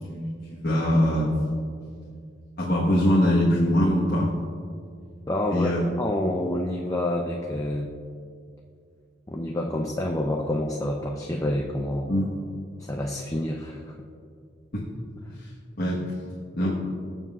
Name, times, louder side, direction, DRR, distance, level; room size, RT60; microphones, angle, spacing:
voice 1, 0.1-1.5 2.6-4.3 5.5-5.8 12.1-12.3 14.7-14.8 15.4-15.5 15.8-16.0 16.5-16.7, equal, 55° left, -5 dB, 1.3 m, -22 dB
voice 2, 5.3-5.7 6.0-7.9 9.3-12.1 12.8-13.9, left 1 dB, 20° left, 0 dB, 0.6 m, -28 dB
20.0 x 7.2 x 2.4 m, 2.3 s
head